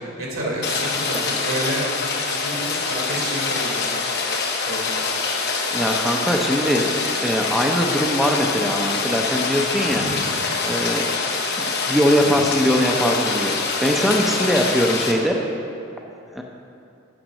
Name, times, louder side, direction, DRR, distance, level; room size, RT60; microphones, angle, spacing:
voice 1, 0.2-1.9 2.2-3.9 4.7-5.0 9.9-10.3 12.2-12.4, right 1 dB, 80° right, -3 dB, 2.4 m, -29 dB
Rain, 0.6-15.1, left 4 dB, 55° left, 1.0 m, -25 dB
voice 2, 5.7-6.9 7.2-10.3 10.6-11.1 11.6-15.4 16.3-16.4, equal, ahead, 0 dB, 0.6 m, -21 dB
8.9 x 5.8 x 6.4 m, 2.7 s
head